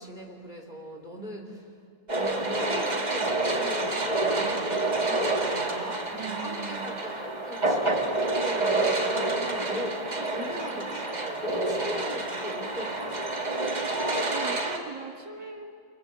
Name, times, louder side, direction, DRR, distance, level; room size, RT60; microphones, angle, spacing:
voice 1, 0.0-1.7 2.1-9.1 9.4-13.0, equal, 20° left, 2 dB, 3.3 m, -40 dB
sound 1, 2.1-14.8, right 2 dB, 20° right, 1.9 m, -28 dB
voice 2, 6.2-7.0 9.1-9.4 13.9-15.7, right 3 dB, 60° right, 3 dB, 2.4 m, -39 dB
29.5 x 24.5 x 7.3 m, 2.2 s
omnidirectional pair, 2.3 m